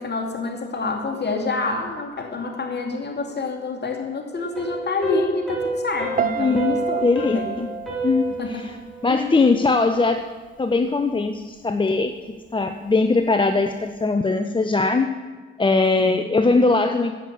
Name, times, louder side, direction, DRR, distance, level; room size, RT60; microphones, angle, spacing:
voice 1, 0.0-7.5 8.3-8.7 9.1-9.3 16.0-16.2, left 3 dB, 35° left, 1 dB, 2.5 m, -27 dB
sound 1, 4.4-9.3, right 2 dB, ahead, 4.1 m, -31 dB
Piano, 6.2-9.3 9.5-10.0, right 8 dB, 30° right, 0.5 m, -30 dB
voice 2, 6.4-7.7 8.0-8.7 9.0-10.2 10.6-15.1 15.6-17.2, left 3 dB, 15° left, 8 dB, 0.6 m, -21 dB
11.0 x 8.1 x 7.1 m, 1.4 s
figure-of-eight pair, 40°, 30 cm